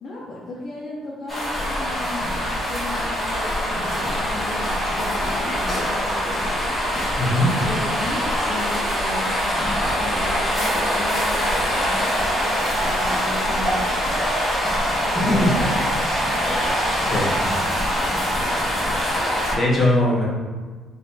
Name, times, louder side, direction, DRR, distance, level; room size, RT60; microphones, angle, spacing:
voice 1, 0.0-6.4 7.5-9.4 9.9-13.9 14.9-15.9 16.4-16.7 17.5-18.4, left 2 dB, 35° left, -7 dB, 0.7 m, -35 dB
sound 1, 1.3-19.5, equal, 5° right, 1.4 m, -23 dB
voice 2, 7.2-7.5 16.8-17.4 19.1-20.2, left 1 dB, 15° left, -7 dB, 1.1 m, -21 dB
3.9 x 3.1 x 4.1 m, 1.4 s
cardioid pair, 170°, 0 cm